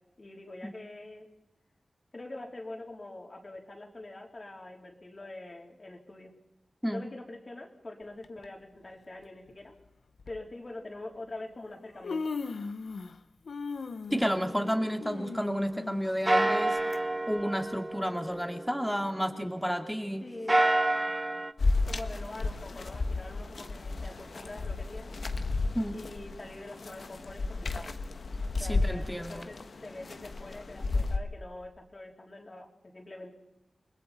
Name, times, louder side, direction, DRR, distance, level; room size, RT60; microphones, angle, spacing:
voice 1, 0.2-1.3 2.1-6.3 6.9-9.7 10.3-12.2 20.2-20.6 21.9-25.1 25.9-27.9 28.6-33.3, left 2 dB, 40° left, 1 dB, 3.6 m, -44 dB
Human voice, 8.2-8.5 9.5-9.6 10.2-10.4 11.4-11.5 11.8-13.2 13.5-17.0 17.4-17.5 18.3-18.4, left 4 dB, 90° left, 1.0 m, -38 dB
voice 2, 14.1-16.8 17.3-20.2 25.7-26.0 28.6-29.5, equal, ahead, 5 dB, 2.3 m, -31 dB
sound 1, 14.1-15.9 16.3-19.8 20.3-21.5, right 1 dB, 20° right, 1.0 m, -30 dB
sound 2, 21.6-31.2, left 3 dB, 65° left, 1.2 m, -33 dB
29.0 x 21.0 x 4.3 m, 0.92 s
wide cardioid pair, 75°, 0 cm